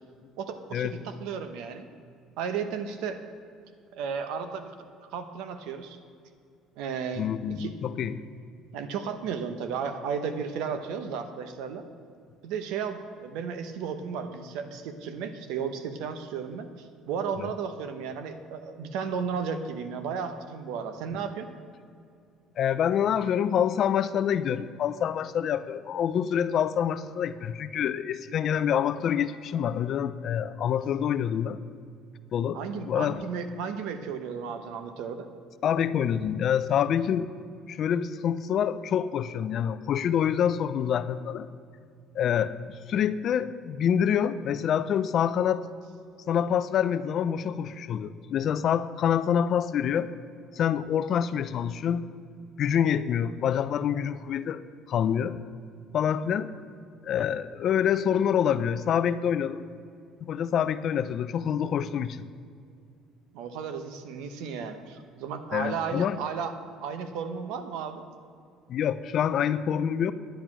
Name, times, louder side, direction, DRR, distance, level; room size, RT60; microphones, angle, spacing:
voice 1, 0.4-1.9 2.4-3.2 3.9-4.7 5.0-6.0 6.8-7.3 7.6-8.1 8.7-11.8 12.4-21.5 32.5-35.3 63.3-66.5 66.8-68.0, right 6 dB, 80° right, 9 dB, 1.0 m, -34 dB
voice 2, 7.2-8.2 17.4-17.5 22.6-31.6 32.3-33.2 35.6-37.3 37.7-41.5 42.1-45.7 46.3-50.1 50.5-52.1 52.6-54.6 54.9-55.4 55.9-56.5 57.0-59.7 60.3-62.3 65.5-66.2 68.7-70.1, left 8 dB, 45° left, 14 dB, 0.4 m, -26 dB
10.5 x 8.8 x 6.1 m, 2.4 s
cardioid pair, 140°, 0 cm